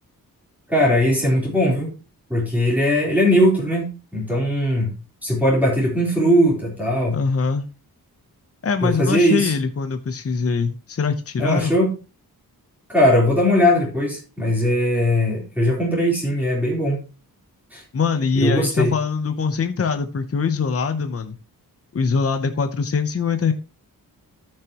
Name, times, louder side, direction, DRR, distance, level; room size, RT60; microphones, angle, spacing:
voice 1, 0.7-1.9 2.3-4.9 5.2-7.2 8.8-9.5 11.4-11.9 12.9-17.0 17.7-17.8 18.4-18.9, equal, 5° right, -5 dB, 3.8 m, -19 dB
voice 2, 7.1-7.7 8.6-11.8 17.9-21.4 21.9-23.5, left 5 dB, 40° left, 8 dB, 0.8 m, -23 dB
13.5 x 6.6 x 3.0 m, 0.32 s
wide cardioid pair, 160°, 36 cm